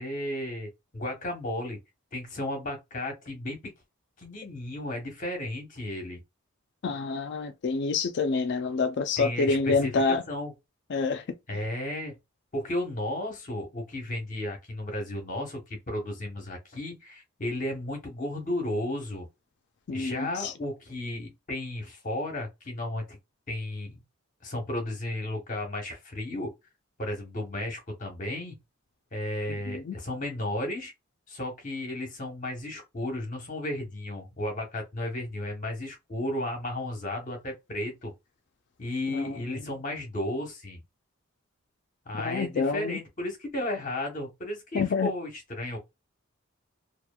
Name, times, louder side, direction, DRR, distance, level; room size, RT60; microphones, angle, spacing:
voice 1, 0.0-1.8 2.1-3.7 4.2-6.2 9.2-10.5 11.5-12.2 12.5-19.3 19.9-23.2 23.5-24.0 24.4-26.5 27.0-28.6 29.1-30.9 31.3-38.1 38.8-40.8 42.1-45.8, left 1 dB, 40° left, 1.0 m, -34 dB
voice 2, 6.8-10.2 10.9-11.2 11.5-11.6 19.9-20.5 29.7-30.0 39.1-39.4 42.2-43.0 44.7-45.1, left 4 dB, 55° left, 0.4 m, -27 dB
2.9 x 2.1 x 2.3 m
head